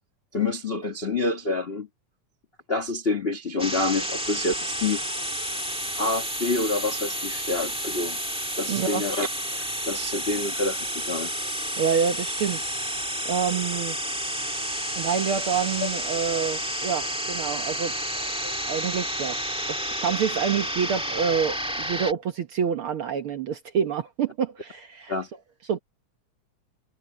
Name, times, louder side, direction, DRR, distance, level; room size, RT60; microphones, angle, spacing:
voice 1, 0.3-1.9 2.7-5.0 5.9-8.2 8.6-9.3 9.5-11.3 15.8-15.9 18.4-18.5 25.1-25.3, left 3 dB, 75° left, 0.5 m, -27 dB
sound 1, 3.6-22.1, equal, 5° right, 1.1 m, -30 dB
voice 2, 8.7-9.0 11.8-12.6 13.2-14.0 14.9-17.9 18.7-19.4 19.7-25.1 25.7-25.8, right 7 dB, 60° right, 1.4 m, -27 dB
omnidirectional pair, 3.6 m